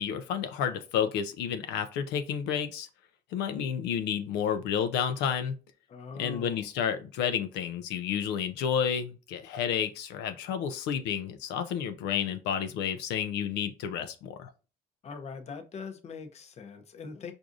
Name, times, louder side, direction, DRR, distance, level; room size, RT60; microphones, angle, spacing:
voice 1, 0.0-2.9 3.3-5.5 6.2-14.5, left 8 dB, 85° left, 0.5 m, -30 dB
voice 2, 5.9-6.7 15.0-17.3, left 5 dB, 40° left, 0.7 m, -42 dB
4.6 x 2.5 x 2.5 m
cardioid pair, 110°, 17 cm